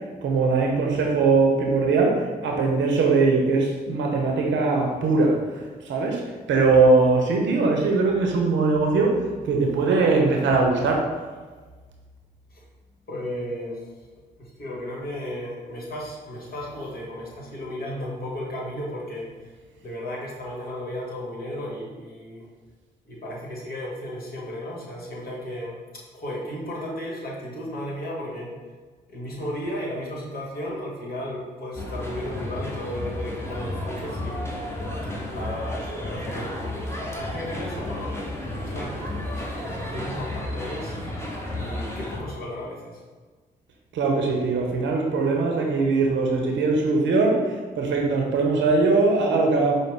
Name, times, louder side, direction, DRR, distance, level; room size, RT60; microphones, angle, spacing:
voice 1, 0.2-5.4 5.8-6.2 6.5-9.2 9.4-11.1 43.9-49.9, right 3 dB, 70° right, 1 dB, 0.7 m, -21 dB
voice 2, 13.1-13.8 14.4-19.3 19.8-22.5 23.0-28.5 29.1-34.5 35.3-38.4 38.7-41.0 41.6-43.0, left 1 dB, 50° left, -3 dB, 1.3 m, -34 dB
sound 1, 31.8-42.2, left 1 dB, 15° left, 1.0 m, -32 dB
4.9 x 2.1 x 3.4 m, 1.4 s
hypercardioid pair, 40°, 20 cm